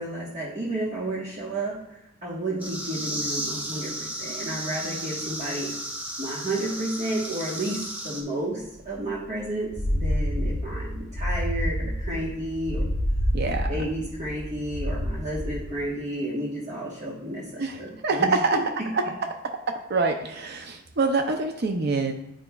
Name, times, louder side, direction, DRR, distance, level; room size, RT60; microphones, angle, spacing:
voice 1, 0.0-5.7 6.2-12.9 13.7-18.6, right 1 dB, 40° right, -5 dB, 1.3 m, -31 dB
sound 1, 2.6-8.2, right 1 dB, 10° right, 1.0 m, -34 dB
sound 2, 8.8-8.9 9.1-9.2 9.6-15.8, equal, 65° left, 0.8 m, -28 dB
voice 2, 13.3-13.7 17.6-18.6 19.1-19.2 19.9-22.1, right 3 dB, 55° right, 4 dB, 0.6 m, -25 dB
9.7 x 5.0 x 2.3 m, 0.81 s
head